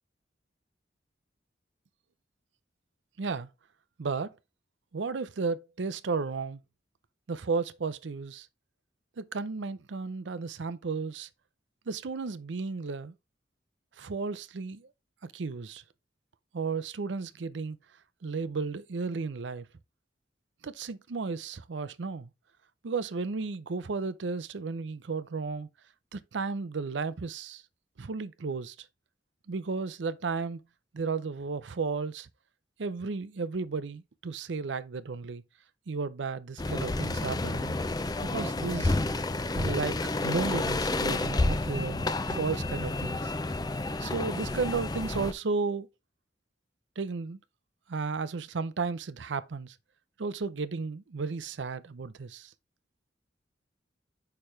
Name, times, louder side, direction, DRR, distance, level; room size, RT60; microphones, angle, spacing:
voice 1, 3.2-3.5 4.0-4.3 4.9-6.6 7.3-8.5 9.2-11.3 11.9-13.1 14.0-14.9 15.2-15.8 16.5-17.8 18.2-19.7 20.6-22.3 22.8-25.7 26.1-27.6 28.0-28.8 29.5-30.6 30.9-32.3 32.8-35.4 35.9-37.8 38.2-39.0 39.5-43.3 44.0-45.9 47.0-47.4 47.9-49.8 50.2-52.5, right 4 dB, 85° right, 0.6 m, -33 dB
sound 1, 36.6-45.3, left 2 dB, 20° left, 0.5 m, -30 dB
6.7 x 5.8 x 3.2 m
head